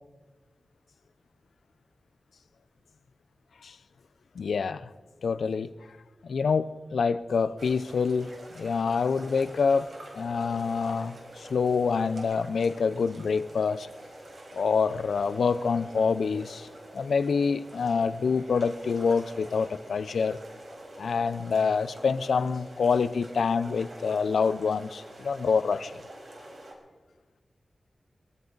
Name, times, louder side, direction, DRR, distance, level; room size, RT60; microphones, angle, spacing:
voice 1, 4.3-4.9 5.2-5.7 6.2-13.9 14.5-16.7 16.9-20.4 21.0-25.9, left 5 dB, 90° left, 0.6 m, -26 dB
sound 1, 7.6-26.7, right 1 dB, 65° right, 4.6 m, -46 dB
24.5 x 14.0 x 4.0 m
cardioid pair, 65°, 0 cm